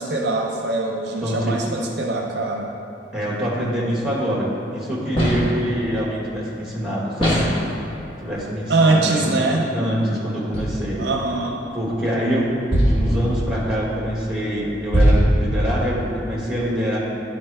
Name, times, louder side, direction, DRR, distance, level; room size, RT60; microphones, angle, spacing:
voice 1, 0.0-2.7 7.2-7.4 8.7-9.6 11.0-11.6, right 2 dB, 60° right, 0 dB, 0.6 m, -22 dB
voice 2, 1.2-1.8 3.1-7.5 8.2-11.0 11.7-17.0, equal, 5° right, -5 dB, 1.3 m, -25 dB
sound 1, 5.2-5.7 7.2-7.7 10.5-11.2 12.7-16.1, equal, 30° left, 1.2 m, -21 dB
10.0 x 4.1 x 3.3 m, 2.7 s
head